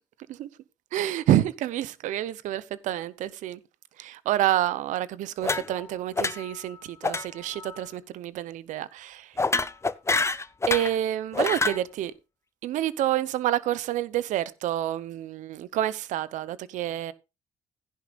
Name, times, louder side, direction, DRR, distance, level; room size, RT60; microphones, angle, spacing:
voice 1, 0.9-3.6 4.0-9.3 10.7-12.1 12.6-17.1, right 13 dB, 75° right, 0.8 m, -28 dB
sound 1, 5.4-5.9 6.2-6.6 7.0-7.3 7.5-7.8 9.4-11.0 11.3-11.8, left 3 dB, 20° left, 0.7 m, -27 dB
15.0 x 10.5 x 2.5 m
supercardioid pair, 60°, 13 cm